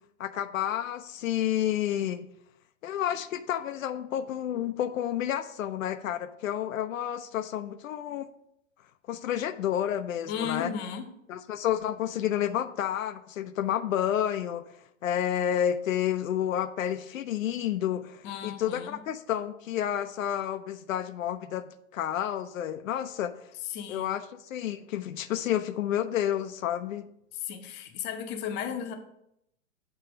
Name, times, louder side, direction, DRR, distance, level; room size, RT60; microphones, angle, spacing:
voice 1, 0.2-2.3 2.8-8.3 9.1-10.7 11.3-14.7 15.0-21.6 21.9-23.4 23.9-27.1, left 10 dB, 80° left, 10 dB, 0.5 m, -30 dB
voice 2, 10.3-11.1 18.2-19.0 23.7-24.2 27.3-28.9, left 8 dB, 25° left, 6 dB, 0.6 m, -35 dB
6.8 x 2.8 x 5.0 m, 0.79 s
hypercardioid pair, 110°, 39 cm